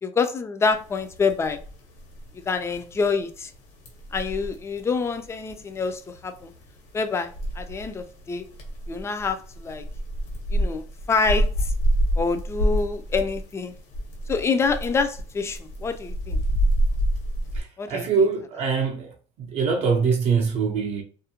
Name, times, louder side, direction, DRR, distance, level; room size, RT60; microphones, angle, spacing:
voice 1, 0.0-1.6 2.5-3.5 4.1-6.5 6.9-8.4 8.9-9.8 10.5-11.7 12.2-13.7 14.3-16.4 17.8-18.3, left 4 dB, 20° left, 0.3 m, -26 dB
sound 1, 0.7-17.6, right 1 dB, 75° left, 1.1 m, -28 dB
voice 2, 17.5-19.1 19.4-21.0, right 5 dB, 50° right, 0.5 m, -23 dB
2.4 x 2.1 x 2.8 m
supercardioid pair, 115°, 14 cm